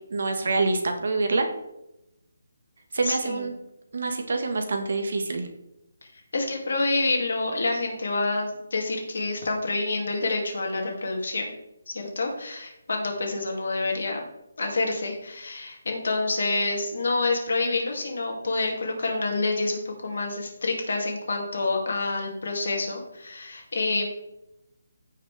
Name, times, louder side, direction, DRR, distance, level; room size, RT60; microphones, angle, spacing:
voice 1, 0.1-1.5 2.9-3.5 3.9-5.5, right 3 dB, 50° right, 5 dB, 1.5 m, -26 dB
voice 2, 3.0-3.5 6.3-11.5 11.9-14.2 14.6-24.1, left 3 dB, 55° left, 1 dB, 2.4 m, -27 dB
15.0 x 5.6 x 3.5 m, 0.88 s
hypercardioid pair, 180°, 0 cm